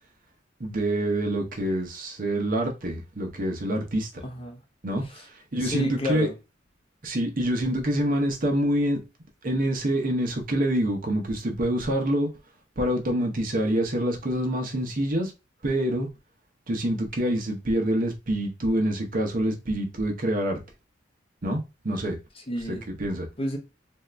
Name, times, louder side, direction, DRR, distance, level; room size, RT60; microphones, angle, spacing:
voice 1, 0.6-4.2 4.8-5.3 5.5-6.3 7.0-9.1 9.4-12.3 12.8-15.3 15.6-16.1 16.7-20.6 21.4-22.2 22.7-23.3, right 1 dB, 50° right, 0.8 m, -26 dB
voice 2, 4.2-4.6 5.0-5.2 5.5-6.4 22.4-22.9 23.4-23.6, left 1 dB, 30° left, 0.8 m, -30 dB
2.7 x 2.4 x 3.3 m
head